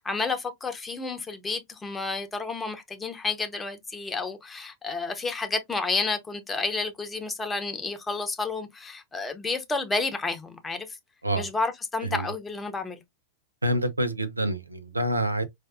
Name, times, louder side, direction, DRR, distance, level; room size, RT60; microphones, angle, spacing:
voice 1, 0.0-11.0 11.4-13.0, left 3 dB, 15° left, 0.8 m, -31 dB
voice 2, 13.6-15.4, right 1 dB, 85° right, 0.5 m, -27 dB
4.6 x 2.5 x 2.4 m
figure-of-eight pair, 90°, 0 cm